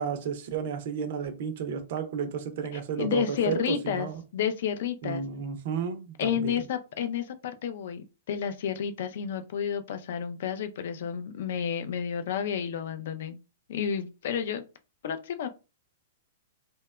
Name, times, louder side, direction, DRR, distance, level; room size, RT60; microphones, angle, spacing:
voice 1, 0.0-4.2 5.0-6.6, right 7 dB, 40° right, 0.4 m, -32 dB
voice 2, 3.0-5.2 6.2-13.4 13.7-14.6 15.0-15.5, left 8 dB, 50° left, 0.3 m, -31 dB
2.7 x 2.1 x 2.2 m
hypercardioid pair, 175°, 0 cm